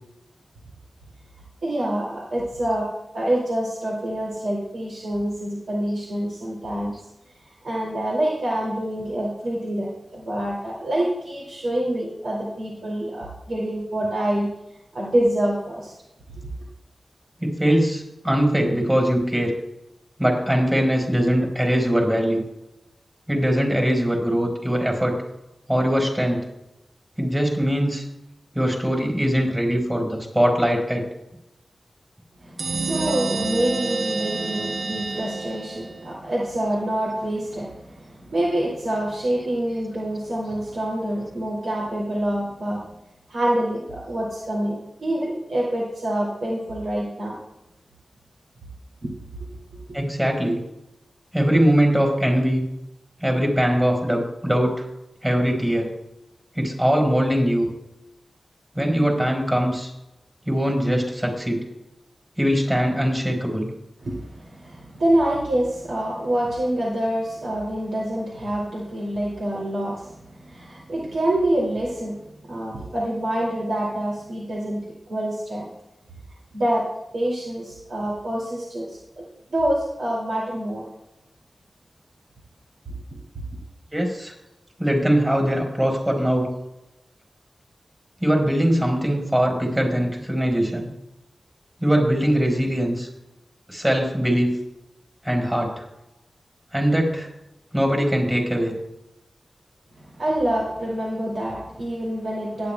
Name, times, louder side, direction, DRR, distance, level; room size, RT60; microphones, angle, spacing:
voice 1, 1.6-6.9 7.6-14.5 14.9-15.9 32.4-42.8 43.3-47.4 49.0-49.1 64.0-74.8 75.1-75.6 76.5-76.9 77.1-79.3 79.5-80.8 100.0-102.7, right 1 dB, 85° right, -5 dB, 2.4 m, -26 dB
voice 2, 17.4-19.5 20.2-22.4 23.3-25.2 25.7-26.4 27.2-28.0 28.5-31.1 49.9-50.6 51.3-52.6 53.2-54.8 55.2-55.9 56.5-57.7 58.7-59.9 60.5-61.6 62.4-63.7 83.9-84.3 84.8-86.5 88.2-90.9 91.8-93.1 93.7-94.5 95.2-95.8 96.7-97.3 97.7-98.8, equal, 15° right, 1 dB, 4.3 m, -21 dB
sound 1, 32.6-36.1, right 3 dB, 65° right, 0.6 m, -28 dB
18.0 x 10.5 x 2.3 m, 0.91 s
wide cardioid pair, 90°, 0 cm